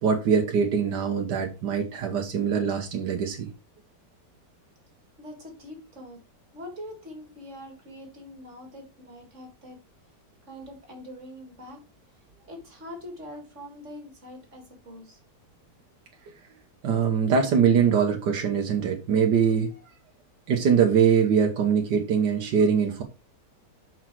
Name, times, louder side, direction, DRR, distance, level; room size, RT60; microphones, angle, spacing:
voice 1, 0.0-3.5 16.8-19.8 20.5-23.0, right 7 dB, 80° right, 1.7 m, -23 dB
voice 2, 5.2-6.2 6.5-9.8 10.5-11.8 12.1-15.2, left 1 dB, 45° right, 2.4 m, -43 dB
6.0 x 5.5 x 4.6 m
omnidirectional pair, 1.8 m